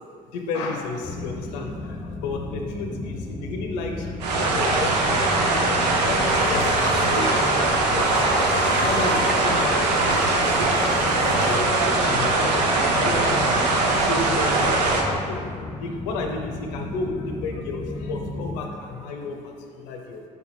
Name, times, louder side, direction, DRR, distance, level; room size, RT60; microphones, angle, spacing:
voice 1, 0.3-20.2, left 3 dB, 80° left, 3 dB, 0.6 m, -33 dB
sound 1, 1.0-18.6, left 2 dB, 20° left, 0.7 m, -34 dB
sound 2, 4.2-15.0, right 2 dB, 85° right, 0.7 m, -21 dB
sound 3, 6.3-11.8, left 1 dB, 55° right, 0.9 m, -35 dB
4.9 x 4.8 x 5.0 m, 2.2 s
hypercardioid pair, 55°, 21 cm